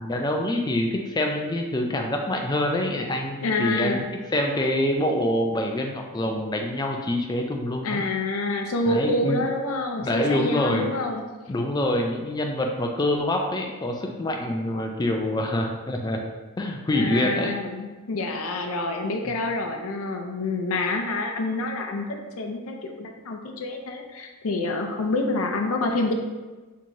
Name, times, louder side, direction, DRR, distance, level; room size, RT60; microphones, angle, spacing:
voice 1, 0.0-4.0 4.3-8.0 8.9-9.4 10.0-10.9 11.5-16.2 16.6-17.5 19.2-19.4, left 1 dB, 20° left, 2 dB, 0.3 m, -25 dB
voice 2, 3.4-4.0 7.8-11.2 16.9-26.1, left 2 dB, 75° left, 3 dB, 0.5 m, -27 dB
4.4 x 3.0 x 2.7 m, 1.3 s
head